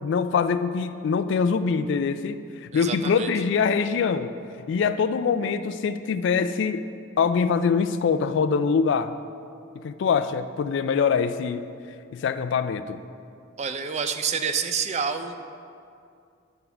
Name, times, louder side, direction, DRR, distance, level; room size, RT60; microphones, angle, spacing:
voice 1, 0.0-4.4 4.7-6.8 7.2-9.2 9.8-11.7 12.1-13.0, left 5 dB, 60° left, 12 dB, 0.3 m, -24 dB
voice 2, 2.7-3.3 13.6-15.4, right 6 dB, 35° right, 8 dB, 0.4 m, -28 dB
8.9 x 4.1 x 5.6 m, 2.4 s
head